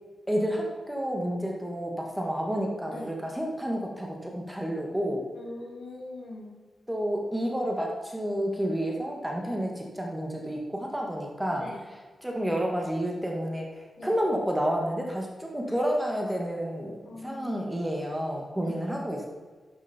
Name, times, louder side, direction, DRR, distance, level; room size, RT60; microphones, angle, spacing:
voice 1, 0.3-5.3 6.9-11.7 12.2-19.3, equal, 5° right, 0 dB, 2.1 m, -30 dB
voice 2, 5.3-6.6 11.6-11.8 14.0-14.1 17.0-17.7 18.6-18.9, left 2 dB, 70° left, -2 dB, 3.8 m, -42 dB
11.5 x 10.5 x 4.6 m, 1.4 s
wide cardioid pair, 110°, 0 cm